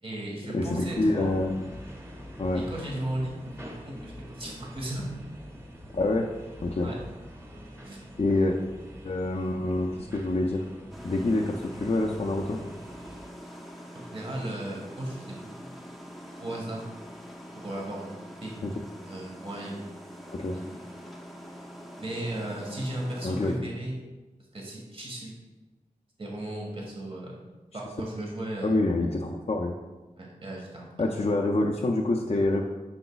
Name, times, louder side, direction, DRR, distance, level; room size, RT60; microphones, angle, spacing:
voice 1, 0.0-1.3 2.5-5.2 6.8-7.0 7.8-8.0 13.9-15.7 16.4-16.9 17.5-18.2 18.4-18.6 19.0-20.0 20.5-20.8 21.9-24.0 24.5-25.3 26.2-27.3 27.7-28.7 30.2-31.1, right 1 dB, 45° right, -3 dB, 1.5 m, -36 dB
voice 2, 0.5-1.5 2.4-2.6 5.9-6.3 6.6-6.9 8.2-8.6 9.0-10.6 11.0-12.6 18.6-18.7 20.3-20.6 23.2-23.7 28.6-29.8 31.0-32.6, left 2 dB, 50° left, -1 dB, 0.5 m, -26 dB
sound 1, 0.6-13.3, equal, 20° right, 1.6 m, -45 dB
sound 2, 10.9-23.6, equal, ahead, 0.9 m, -44 dB
7.8 x 5.8 x 2.3 m, 1.2 s
wide cardioid pair, 50°, 14 cm